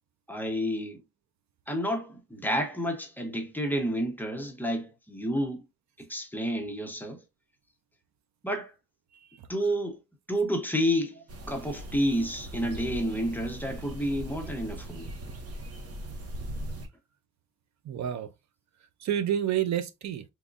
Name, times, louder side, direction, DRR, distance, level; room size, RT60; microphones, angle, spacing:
voice 1, 0.3-1.0 1.7-5.6 6.0-7.2 8.4-8.7 9.5-10.0 10.3-11.2 11.5-15.1, equal, 5° left, 0.6 m, -30 dB
voice 2, 9.1-9.5 17.8-18.3 19.0-20.2, right 10 dB, 70° right, 0.5 m, -29 dB
sound 1, 11.3-16.9, right 1 dB, 50° right, 0.8 m, -39 dB
3.6 x 3.0 x 2.4 m
wide cardioid pair, 160°, 30 cm